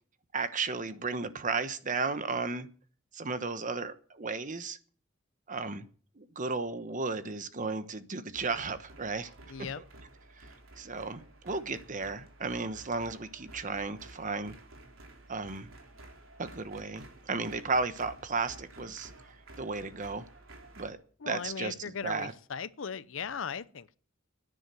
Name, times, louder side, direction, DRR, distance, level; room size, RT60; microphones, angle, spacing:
voice 1, 0.3-2.7 3.1-4.8 5.5-5.9 6.2-9.3 10.8-14.5 15.3-15.7 16.4-19.1 19.6-20.2 20.8-21.0 21.2-21.7 22.0-22.3, right 4 dB, 40° right, 1.1 m, -34 dB
sound 1, 8.3-20.9, right 2 dB, 85° right, 3.5 m, -52 dB
voice 2, 9.5-9.8 21.2-24.0, left 6 dB, 70° left, 0.7 m, -38 dB
10.5 x 10.0 x 9.2 m
head